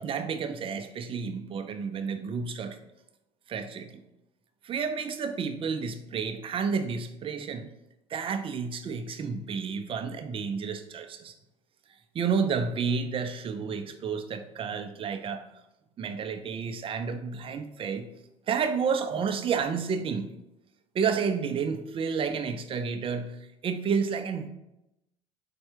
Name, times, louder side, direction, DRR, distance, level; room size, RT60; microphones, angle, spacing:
voice 1, 0.0-2.8 3.5-4.0 4.6-7.7 8.1-11.3 12.1-15.4 16.0-18.1 18.5-20.3 20.9-23.4 23.6-24.5, right 6 dB, 35° right, 8 dB, 0.5 m, -30 dB
4.3 x 2.3 x 4.5 m, 0.89 s
supercardioid pair, 85°, 15 cm